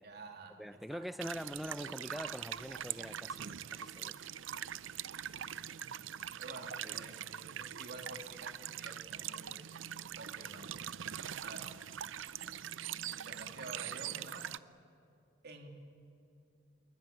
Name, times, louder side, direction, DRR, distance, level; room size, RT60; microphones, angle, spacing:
voice 1, 0.0-0.6 0.9-1.0 5.4-5.8 6.4-9.6 10.2-10.6 11.4-11.7 13.2-14.6 15.4-15.7, right 2 dB, 55° right, 3.3 m, -50 dB
voice 2, 0.6-4.1 6.8-7.1, equal, ahead, 0.7 m, -44 dB
sound 1, 1.2-14.6, right 10 dB, 70° right, 0.6 m, -43 dB
26.5 x 23.0 x 9.1 m
head